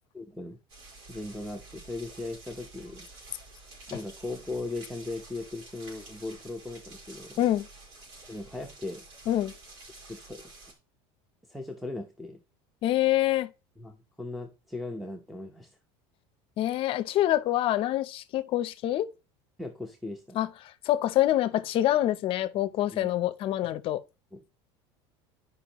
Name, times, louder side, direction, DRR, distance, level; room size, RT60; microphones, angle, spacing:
voice 1, 0.1-0.6 1.1-3.1 3.9-7.4 8.3-9.0 10.0-10.4 11.5-12.4 13.8-15.7 19.6-20.4 22.9-23.1 24.3-24.5, left 2 dB, ahead, 0.8 m, -38 dB
sound 1, 0.7-10.7, right 2 dB, 75° right, 4.3 m, -50 dB
voice 2, 12.8-13.5 16.6-19.1 20.3-20.5 20.8-24.0, left 13 dB, 45° left, 0.6 m, -26 dB
12.0 x 5.2 x 3.0 m
supercardioid pair, 135°, 13 cm